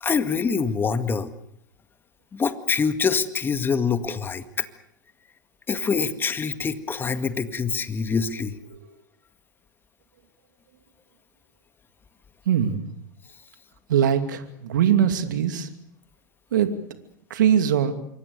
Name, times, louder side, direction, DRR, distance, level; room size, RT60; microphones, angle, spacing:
voice 1, 0.0-1.3 2.3-4.7 5.7-8.6, left 5 dB, 20° left, 11 dB, 2.0 m, -25 dB
voice 2, 12.5-12.8 13.9-15.7 16.5-16.7 17.3-17.9, right 9 dB, 70° right, 9 dB, 2.7 m, -21 dB
27.0 x 24.0 x 6.8 m, 0.70 s
hypercardioid pair, 100°, 10 cm